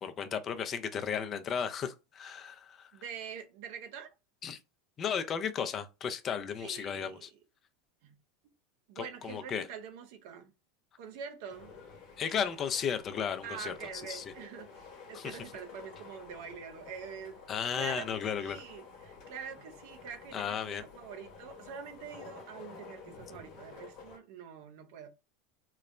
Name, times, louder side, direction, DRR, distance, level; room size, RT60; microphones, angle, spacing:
voice 1, 0.0-2.9 4.4-4.6 5.0-7.3 9.0-9.7 12.2-13.7 14.1-14.3 15.1-15.4 17.5-18.6 20.3-20.8, left 7 dB, 35° left, 0.4 m, -34 dB
voice 2, 2.9-4.1 6.6-7.3 8.0-8.1 8.9-10.5 11.0-11.7 13.4-17.4 17.7-25.1, right 7 dB, 70° right, 0.6 m, -45 dB
sound 1, 11.5-24.2, left 5 dB, 60° left, 1.0 m, -51 dB
3.0 x 2.0 x 2.4 m
hypercardioid pair, 100°, 0 cm